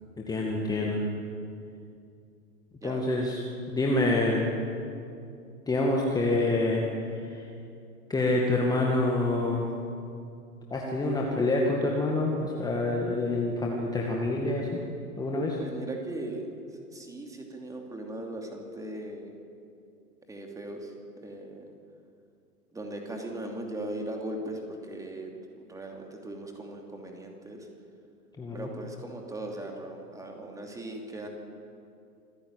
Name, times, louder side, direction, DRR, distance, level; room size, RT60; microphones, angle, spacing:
voice 1, 0.3-1.0 2.8-3.4 3.7-4.5 5.7-6.8 8.1-9.6 10.7-14.8 15.2-15.6 28.4-28.7, left 2 dB, 10° left, -2 dB, 2.1 m, -26 dB
voice 2, 15.6-16.4 16.9-19.3 20.3-20.9 21.2-21.6 22.7-25.3 25.6-27.7 28.5-31.3, right 1 dB, 5° right, 1 dB, 2.8 m, -38 dB
26.0 x 15.5 x 8.9 m, 2.5 s
figure-of-eight pair, 110°, 46 cm